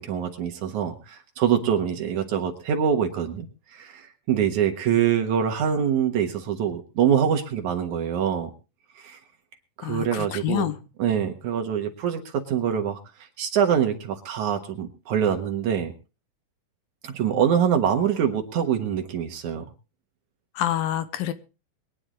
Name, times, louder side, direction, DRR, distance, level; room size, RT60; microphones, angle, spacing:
voice 1, 0.0-3.5 3.8-8.5 9.0-9.2 9.8-10.7 11.0-13.0 13.4-15.9 17.0-19.6, right 8 dB, 65° right, 5 dB, 2.5 m, -24 dB
voice 2, 9.8-10.8 20.6-21.3, left 12 dB, 85° left, 12 dB, 2.7 m, -27 dB
22.5 x 9.8 x 3.7 m, 0.32 s
omnidirectional pair, 4.2 m